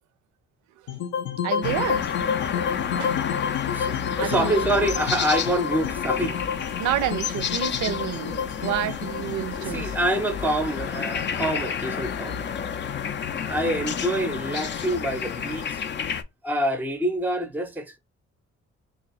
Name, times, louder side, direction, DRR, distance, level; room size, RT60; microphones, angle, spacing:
sound 1, 0.9-11.1, left 7 dB, 80° left, 0.6 m, -30 dB
voice 1, 1.4-2.0 3.0-3.2 4.2-5.0 6.8-9.9, right 13 dB, 75° right, 0.4 m, -29 dB
sound 2, 1.6-16.2, left 7 dB, 40° left, 0.4 m, -30 dB
voice 2, 3.7-6.5 8.6-8.7 9.6-12.6 13.4-15.8 16.4-18.0, right 1 dB, 5° right, 0.6 m, -26 dB
3.0 x 2.2 x 4.0 m
cardioid pair, 90°, 30 cm